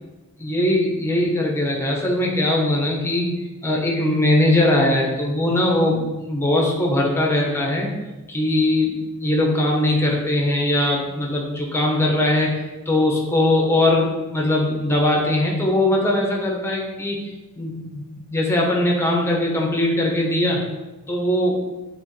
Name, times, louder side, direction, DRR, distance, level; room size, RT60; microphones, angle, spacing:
voice 1, 0.4-3.3 3.6-7.9 8.3-20.6 21.1-21.6, left 1 dB, 10° left, -1 dB, 0.9 m, -20 dB
8.0 x 3.7 x 3.2 m, 1.1 s
head